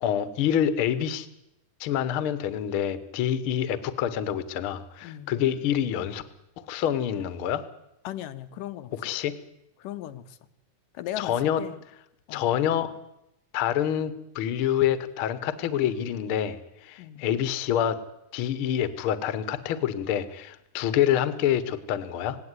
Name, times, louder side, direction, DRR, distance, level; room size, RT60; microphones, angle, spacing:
voice 1, 0.0-1.3 1.8-6.2 6.6-7.6 9.0-9.3 11.2-11.6 12.3-12.9 13.5-18.0 18.3-22.4, left 10 dB, 55° left, 14 dB, 1.6 m, -27 dB
voice 2, 5.0-5.4 8.0-8.9 9.8-10.4 10.9-11.8 12.3-12.5 17.0-17.3, left 12 dB, 85° left, 12 dB, 2.6 m, -37 dB
18.5 x 17.5 x 9.8 m, 0.83 s
omnidirectional pair, 3.8 m